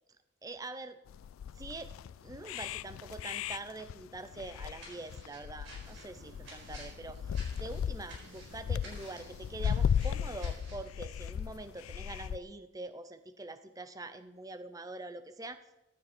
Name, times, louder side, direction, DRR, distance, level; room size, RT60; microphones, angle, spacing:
voice 1, 0.4-1.0 1.6-1.9 2.2-7.2 7.5-15.6, right 2 dB, 15° right, 11 dB, 0.6 m, -44 dB
sound 1, 1.1-12.4, left 8 dB, 85° left, 0.3 m, -36 dB
sound 2, 4.7-10.9, right 2 dB, 65° right, 4.3 m, -53 dB
sound 3, 5.8-10.8, right 2 dB, 85° right, 1.2 m, -58 dB
15.0 x 9.5 x 4.3 m, 0.95 s
head